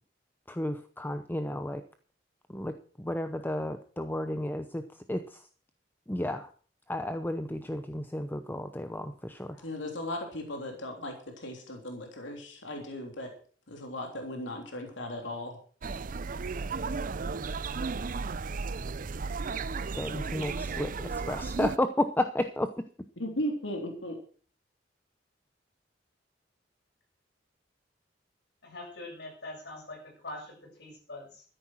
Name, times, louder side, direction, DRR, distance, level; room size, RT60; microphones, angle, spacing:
voice 1, 0.5-1.8 2.5-5.5 6.1-6.5 6.9-9.7 19.9-22.8, left 1 dB, 10° left, 9 dB, 0.8 m, -33 dB
voice 2, 9.6-13.3 13.7-15.6 23.2-24.2, left 1 dB, 90° left, 3 dB, 3.3 m, -37 dB
sound 1, 15.8-21.8, right 4 dB, 45° right, 0.6 m, -34 dB
voice 3, 28.6-31.4, left 2 dB, 65° left, 0 dB, 7.5 m, -43 dB
13.5 x 10.0 x 6.3 m, 0.42 s
head